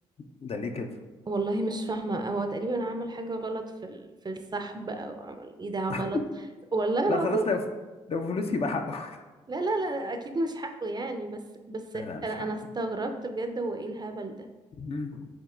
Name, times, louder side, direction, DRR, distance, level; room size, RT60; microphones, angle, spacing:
voice 1, 0.4-0.9 5.9-6.1 7.1-7.6 8.1-9.2 11.9-12.5 14.8-15.3, left 3 dB, 45° left, 5 dB, 0.6 m, -31 dB
voice 2, 1.3-6.2 6.7-7.5 9.5-11.4 11.7-14.5, right 2 dB, 30° right, 6 dB, 0.5 m, -31 dB
7.1 x 2.9 x 2.4 m, 1.2 s
hypercardioid pair, 50°, 14 cm